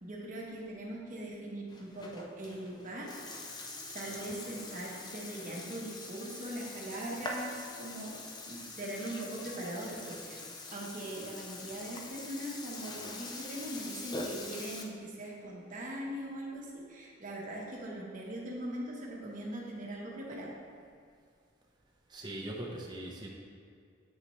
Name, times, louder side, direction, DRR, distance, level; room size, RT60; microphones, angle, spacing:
voice 1, 0.0-3.1 3.9-20.5, right 1 dB, 40° right, -3 dB, 1.0 m, -41 dB
Burping eructation, 1.7-14.8, left 2 dB, 20° left, 0.4 m, -44 dB
voice 2, 22.1-23.3, right 1 dB, 20° right, -2 dB, 0.6 m, -41 dB
8.0 x 4.1 x 3.1 m, 2.2 s
head